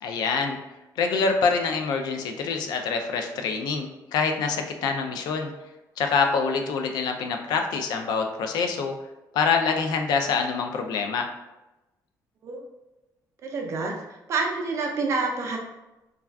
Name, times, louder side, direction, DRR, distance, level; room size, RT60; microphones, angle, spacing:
voice 1, 0.0-0.6 1.0-5.5 6.0-8.9 9.3-11.3, left 5 dB, 70° left, 4 dB, 0.3 m, -25 dB
voice 2, 13.4-13.9 14.3-15.6, right 3 dB, 40° right, 1 dB, 0.4 m, -27 dB
2.3 x 2.3 x 3.3 m, 1.0 s
cardioid pair, 175°, 7 cm